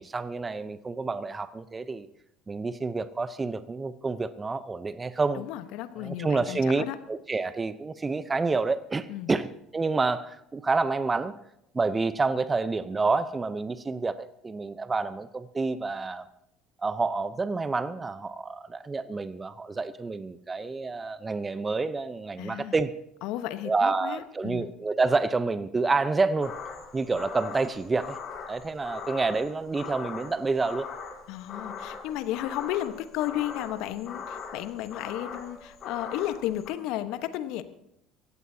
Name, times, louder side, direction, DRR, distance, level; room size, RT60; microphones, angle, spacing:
voice 1, 0.0-2.1 2.5-5.4 6.0-11.3 11.7-16.3 16.8-22.9 23.6-26.5 26.9-28.2 28.5-30.9, right 3 dB, 25° right, 14 dB, 0.8 m, -28 dB
voice 2, 5.4-6.9 9.1-9.4 22.4-22.7 23.2-24.7 31.3-37.6, left 13 dB, 65° left, 11 dB, 1.1 m, -33 dB
sound 1, 26.4-36.7, left 5 dB, 50° left, 2.3 m, -41 dB
23.0 x 16.5 x 2.8 m, 0.80 s
hypercardioid pair, 70°, 0 cm